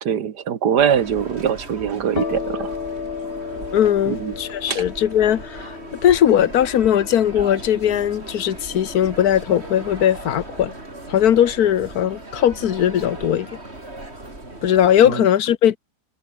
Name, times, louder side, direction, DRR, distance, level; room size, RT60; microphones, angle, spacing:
voice 1, 0.0-2.8 4.1-4.3 4.7-4.8 15.0-15.3, right 8 dB, 80° right, 1.9 m, -22 dB
sound 1, 0.8-15.2, right 2 dB, 40° right, 5.6 m, -37 dB
sound 2, 2.1-9.6, left 6 dB, 40° left, 1.3 m, -34 dB
voice 2, 3.7-5.8 6.0-10.7 11.1-13.5 14.6-15.8, left 10 dB, 70° left, 1.5 m, -19 dB
omnidirectional pair, 1.7 m